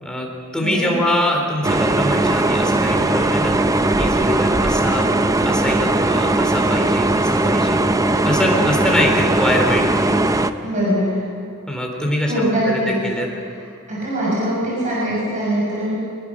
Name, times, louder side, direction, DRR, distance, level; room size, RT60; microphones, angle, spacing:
voice 1, 0.0-5.1 5.4-7.8 8.2-9.9 11.7-12.3 12.7-13.3, left 1 dB, 5° left, 0 dB, 3.9 m, -23 dB
voice 2, 0.6-1.0 10.6-11.2 12.3-12.9 13.4-13.6 13.9-16.0, equal, 35° right, -5 dB, 6.1 m, -22 dB
sound 1, 1.6-10.5, right 2 dB, 15° right, 0.7 m, -18 dB
24.0 x 20.5 x 6.4 m, 2.4 s
head